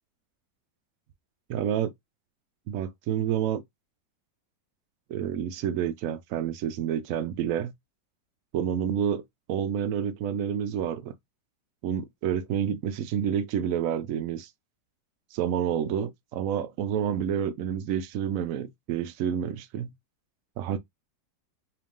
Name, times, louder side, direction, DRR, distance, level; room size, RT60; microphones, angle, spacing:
voice 1, 1.5-1.9 2.7-3.6 5.1-7.7 8.5-11.1 11.8-14.5 15.3-19.9 20.6-20.8, right 9 dB, 90° right, 0.7 m, -29 dB
4.5 x 2.5 x 3.6 m
omnidirectional pair, 2.0 m